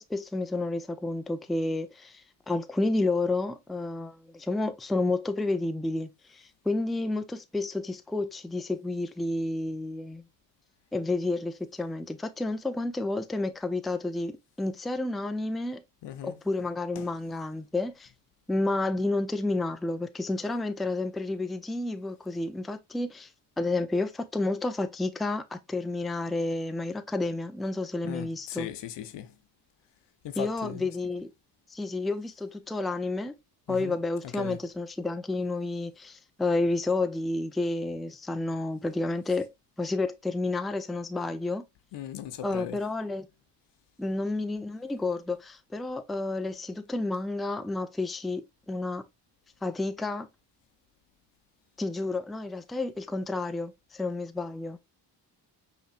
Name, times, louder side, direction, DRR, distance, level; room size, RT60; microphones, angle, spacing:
voice 1, 0.0-10.3 10.9-15.8 16.2-18.1 18.5-28.7 30.4-31.3 31.7-33.4 33.7-39.5 39.8-41.6 42.4-43.3 44.0-49.0 49.6-50.3 51.8-54.8, left 2 dB, ahead, 0.4 m, -30 dB
voice 2, 16.0-16.4 17.0-17.1 28.0-29.4 30.2-30.9 33.7-33.9 34.4-34.6 41.9-42.8, left 10 dB, 70° left, 0.7 m, -38 dB
5.6 x 3.1 x 2.4 m
cardioid pair, 70°, 43 cm